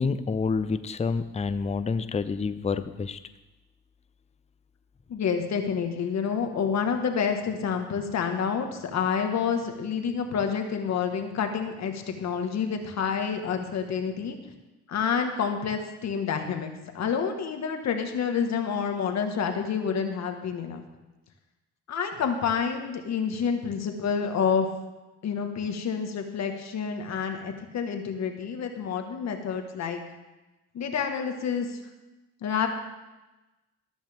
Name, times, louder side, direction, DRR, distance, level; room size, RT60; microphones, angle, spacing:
voice 1, 0.0-3.2, left 4 dB, 20° left, 12 dB, 0.6 m, -28 dB
voice 2, 5.1-14.4 14.9-20.8 21.9-24.7 25.2-30.0 30.7-31.8 32.4-32.7, left 6 dB, 60° left, 5 dB, 1.7 m, -28 dB
13.5 x 13.0 x 3.6 m, 1.1 s
cardioid pair, 90°, 30 cm